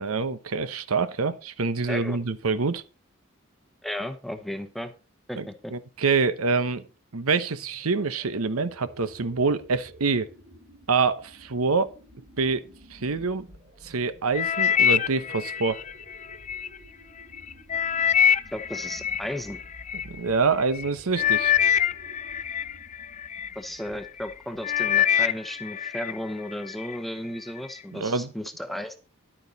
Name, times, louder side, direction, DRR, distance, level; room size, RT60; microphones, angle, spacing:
voice 1, 0.0-2.8 5.4-6.8 7.1-10.3 10.9-11.9 12.4-12.7 12.9-13.5 13.8-15.8 20.0-21.5 27.9-28.3, right 4 dB, 85° right, 0.9 m, -26 dB
voice 2, 3.8-4.9 5.3-5.7 18.5-19.6 23.5-28.9, left 1 dB, ahead, 0.9 m, -34 dB
sound 1, 7.5-25.0, right 1 dB, 55° right, 2.8 m, -51 dB
sound 2, 14.3-16.7 17.2-20.0 20.7-20.9 21.2-23.5 24.1-24.3 24.6-26.2 26.5-27.0 27.6-27.7, left 9 dB, 35° left, 0.4 m, -24 dB
11.0 x 8.9 x 4.1 m
head